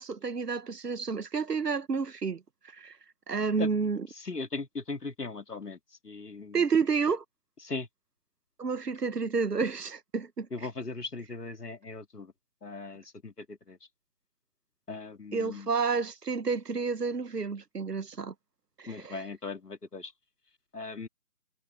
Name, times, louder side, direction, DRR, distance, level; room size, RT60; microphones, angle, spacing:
voice 1, 0.0-3.0 3.3-4.0 6.5-7.2 8.6-10.5 15.3-18.3 18.8-19.2, right 5 dB, 80° right, 1.2 m, -30 dB
voice 2, 4.1-5.8 6.0-6.6 7.6-7.9 10.5-12.3 12.6-13.8 14.9-15.7 18.9-20.1 20.7-21.1, left 3 dB, 75° left, 3.3 m, -38 dB
figure-of-eight pair, 170°, 47 cm